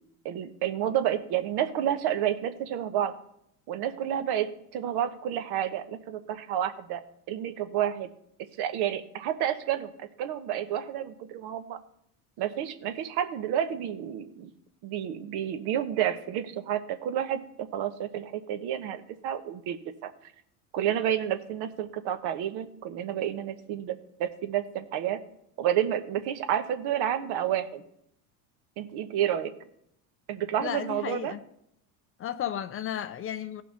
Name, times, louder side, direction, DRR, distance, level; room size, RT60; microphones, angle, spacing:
voice 1, 0.2-3.1 3.7-7.0 7.3-8.1 8.6-11.8 12.4-14.5 14.8-20.1 20.7-25.2 25.6-27.8 28.8-29.5 30.3-31.3, right 10 dB, 60° right, 9 dB, 1.1 m, -30 dB
voice 2, 30.6-31.4 32.2-33.6, left 10 dB, 30° left, 13 dB, 0.4 m, -33 dB
16.0 x 5.7 x 4.2 m, 0.73 s
supercardioid pair, 105°, 44 cm